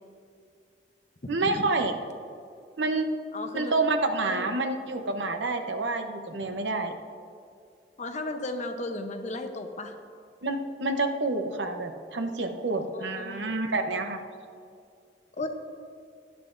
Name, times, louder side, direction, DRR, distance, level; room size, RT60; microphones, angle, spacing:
voice 1, 1.3-1.9 2.8-3.1 3.5-6.9 10.4-14.2, right 2 dB, 85° right, 6 dB, 0.9 m, -28 dB
voice 2, 3.3-3.8 4.3-4.5 8.0-9.9 12.7-13.5 15.4-15.5, left 2 dB, 40° left, 5 dB, 0.8 m, -35 dB
17.0 x 11.0 x 2.6 m, 2.3 s
head